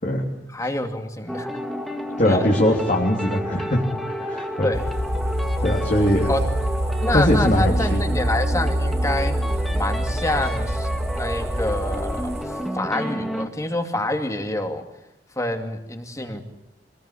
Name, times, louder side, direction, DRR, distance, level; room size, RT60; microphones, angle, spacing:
voice 1, 0.5-1.5 2.2-2.5 4.6-4.9 6.3-6.4 7.0-9.3 9.7-14.8 15.4-16.4, left 1 dB, 20° left, 6 dB, 2.6 m, -27 dB
sound 1, 1.3-13.5, equal, ahead, 2.1 m, -31 dB
voice 2, 2.2-4.7 5.6-6.3 7.1-8.0, left 1 dB, 45° left, -2 dB, 3.4 m, -21 dB
sound 2, 4.7-12.4, right 1 dB, 35° right, 2.1 m, -25 dB
25.0 x 20.5 x 8.6 m, 0.84 s
head